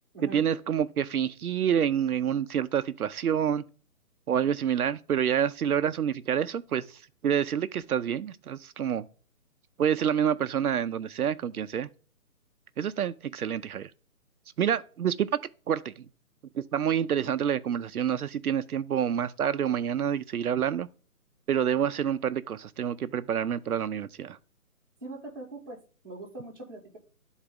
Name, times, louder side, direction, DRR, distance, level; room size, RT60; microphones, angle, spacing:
voice 1, 0.2-3.6 4.3-9.0 9.8-11.9 12.8-13.9 14.6-15.4 15.7-15.9 16.6-20.9 21.5-24.4, right 9 dB, 75° right, 0.6 m, -28 dB
voice 2, 25.0-27.0, right 2 dB, 15° right, 1.2 m, -42 dB
11.5 x 4.0 x 3.7 m
hypercardioid pair, 180°, 45 cm